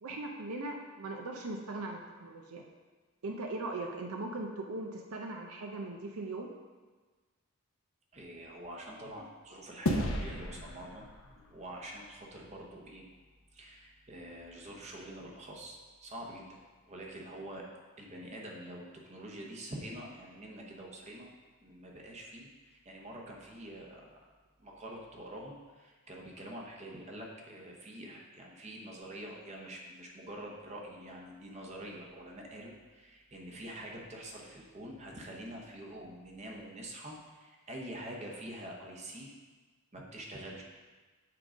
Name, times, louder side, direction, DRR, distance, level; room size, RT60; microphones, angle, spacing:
voice 1, 0.0-2.6 3.2-6.5, right 2 dB, 75° right, 2 dB, 0.6 m, -39 dB
voice 2, 8.1-13.0 13.5-16.6 16.8-17.7 18.0-21.3 21.6-24.0 24.6-39.3 39.9-40.6, right 1 dB, 30° right, -1 dB, 0.8 m, -46 dB
sound 1, 9.9-12.5, left 1 dB, 60° left, 0.7 m, -35 dB
7.5 x 3.7 x 5.0 m, 1.4 s
head